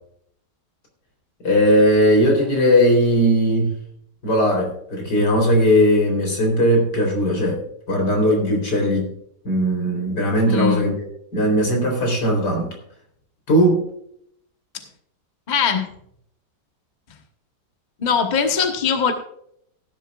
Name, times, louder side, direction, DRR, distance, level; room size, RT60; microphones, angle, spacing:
voice 1, 1.4-3.7 4.2-7.6 7.9-9.1 9.4-10.9 11.3-12.7 13.5-13.9, equal, 70° left, 1 dB, 4.4 m, -18 dB
voice 2, 10.5-10.9 15.5-15.9 18.0-19.1, left 6 dB, 30° left, 4 dB, 1.2 m, -21 dB
16.5 x 11.0 x 2.4 m, 0.69 s
omnidirectional pair, 1.9 m